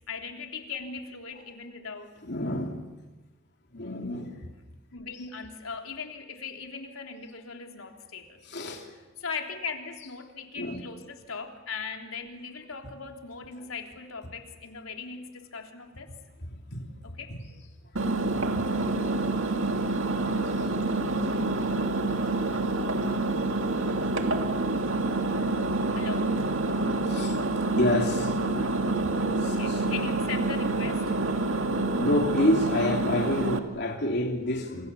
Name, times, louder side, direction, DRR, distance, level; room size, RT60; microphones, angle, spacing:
voice 1, 0.1-2.2 4.9-8.4 9.2-16.1 17.1-17.3 25.9-26.4 29.5-31.1, left 5 dB, 85° left, 3.4 m, -39 dB
voice 2, 2.2-3.0 3.7-4.5 8.4-9.0 10.5-10.8 16.4-16.9 17.3-17.4 18.0-18.6 20.3-23.0 23.4-25.0 25.3-26.0 26.6-29.8 31.9-34.9, left 1 dB, 55° left, 3.4 m, -31 dB
Engine, 18.0-33.6, right 2 dB, 65° right, 2.3 m, -27 dB
29.0 x 27.5 x 7.1 m
head